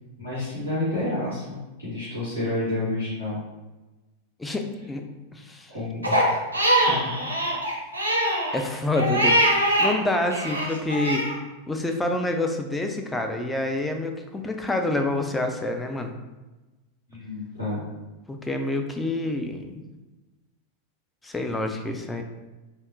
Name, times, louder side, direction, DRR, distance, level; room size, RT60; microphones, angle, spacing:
voice 1, 0.2-3.4 5.7-6.3 6.9-7.3 17.1-17.9, left 2 dB, 80° left, -11 dB, 1.1 m, -30 dB
voice 2, 4.4-5.1 5.3-5.7 8.5-9.4 9.8-11.3 11.7-16.1 18.3-19.8 21.2-22.2, left 2 dB, 10° left, 4 dB, 0.3 m, -27 dB
Crying sobbing, 6.0-9.9 10.3-11.3, right 1 dB, 80° right, 0.5 m, -22 dB
3.4 x 2.0 x 2.5 m, 1.1 s
figure-of-eight pair, 90°, 0 cm